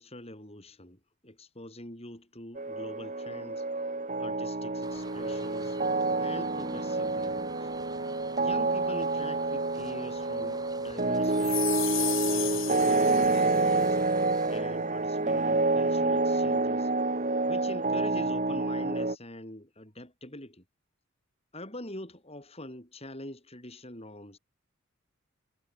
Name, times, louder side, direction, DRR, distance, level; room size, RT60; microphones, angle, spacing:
voice 1, 0.0-3.7 4.2-5.8 6.2-7.7 8.4-14.0 14.5-16.9 17.5-20.6 21.5-24.4, left 1 dB, 30° left, 7.0 m, -44 dB
sound 1, 2.6-19.2, right 3 dB, 35° right, 2.0 m, -28 dB
sound 2, 4.8-14.6, right 3 dB, 20° right, 5.1 m, -50 dB
sound 3, 11.3-13.9, left 17 dB, 60° left, 2.5 m, -34 dB
head